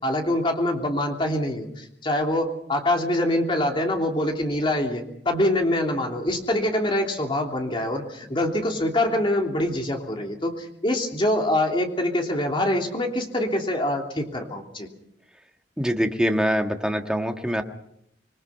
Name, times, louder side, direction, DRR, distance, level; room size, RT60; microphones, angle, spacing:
voice 1, 0.0-14.9, left 1 dB, 30° left, 2 dB, 3.2 m, -25 dB
voice 2, 15.8-17.6, equal, 5° right, 4 dB, 1.5 m, -24 dB
26.5 x 21.5 x 5.8 m, 0.74 s
head